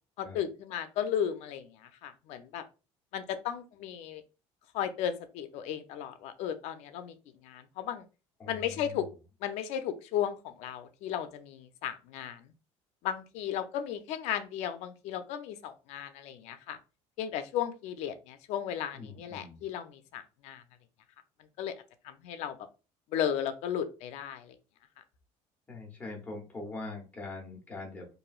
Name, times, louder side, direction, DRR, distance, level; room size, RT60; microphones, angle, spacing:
voice 1, 0.2-2.6 3.1-4.2 4.7-7.1 7.4-8.0 8.5-9.1 9.4-12.5 13.0-16.8 17.2-20.6 21.6-21.7 22.0-22.6 23.1-24.6, left 9 dB, 65° left, 10 dB, 0.4 m, -35 dB
voice 2, 8.4-9.1 18.9-19.6 25.7-28.1, left 3 dB, 15° left, 0 dB, 0.8 m, -42 dB
2.9 x 2.6 x 2.3 m, 0.32 s
cardioid pair, 165°, 12 cm